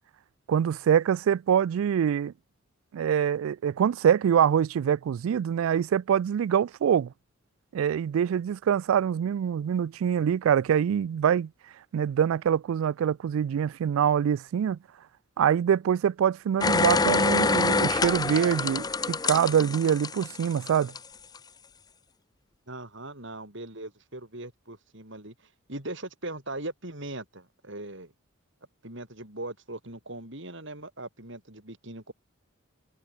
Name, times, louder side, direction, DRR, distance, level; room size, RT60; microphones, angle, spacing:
voice 1, 0.5-2.3 2.9-7.1 7.7-11.5 11.9-14.8 15.4-20.9, right 8 dB, 75° right, 0.3 m, -24 dB
sound 1, 16.6-21.0 21.4-21.5, left 3 dB, 20° left, 0.6 m, -26 dB
voice 2, 22.7-25.3 25.7-28.1 28.8-32.1, right 2 dB, 60° right, 5.9 m, -39 dB
head